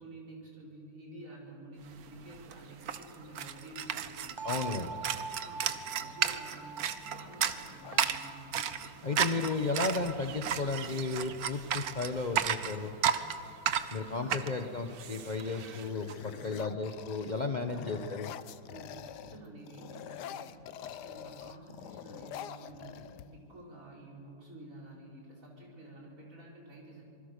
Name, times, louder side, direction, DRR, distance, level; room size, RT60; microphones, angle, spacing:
voice 1, 0.0-4.5 5.4-8.6 8.8-9.6 13.7-14.6 16.2-16.6 17.3-18.0 18.7-27.0, right 1 dB, 50° right, -3 dB, 5.3 m, -50 dB
sound 1, 2.0-2.1 2.3-16.2, right 9 dB, 65° right, 1.3 m, -34 dB
voice 2, 4.4-5.0 9.0-13.0 13.9-18.3, left 3 dB, 30° left, 5 dB, 0.9 m, -34 dB
sound 2, 4.4-10.2, right 4 dB, 35° right, 0.4 m, -46 dB
sound 3, 7.8-8.7 10.4-10.6 10.9-11.4 11.9-13.5 14.1-14.5 14.8-19.4 19.7-23.6, left 10 dB, 75° left, 1.3 m, -47 dB
26.0 x 21.0 x 6.7 m, 2.5 s
omnidirectional pair, 1.8 m